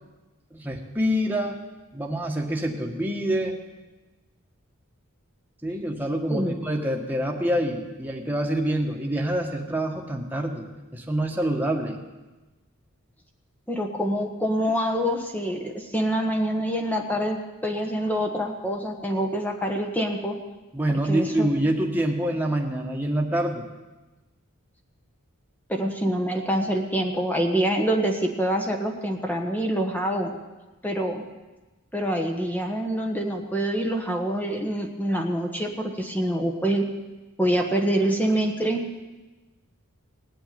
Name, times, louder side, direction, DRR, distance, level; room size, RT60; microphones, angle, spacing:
voice 1, 0.5-1.6 1.9-3.6 5.6-10.6 10.9-12.0 20.7-23.6, right 1 dB, 10° right, 0 dB, 1.6 m, -26 dB
voice 2, 13.7-20.4 21.0-21.5 25.7-30.3 30.8-31.2 31.9-36.9 37.4-38.8, right 1 dB, 10° left, 3 dB, 1.3 m, -26 dB
18.5 x 8.1 x 9.4 m, 1.1 s
head